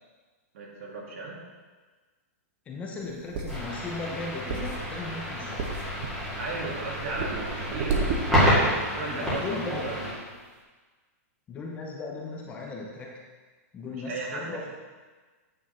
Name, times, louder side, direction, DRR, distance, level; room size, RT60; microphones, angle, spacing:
voice 1, 0.5-1.4 6.4-10.1 13.9-14.7, right 3 dB, 60° right, -2 dB, 2.1 m, -36 dB
voice 2, 2.7-5.7 9.1-10.0 11.5-13.2 13.7-14.7, left 3 dB, 15° left, -1 dB, 0.8 m, -37 dB
sound 1, 3.0-8.8 9.3-9.4 9.7-9.8, right 3 dB, 35° right, 1.0 m, -33 dB
sound 2, 3.5-10.1, equal, 5° right, 2.4 m, -29 dB
8.8 x 3.9 x 5.9 m, 1.4 s
hypercardioid pair, 165°, 8 cm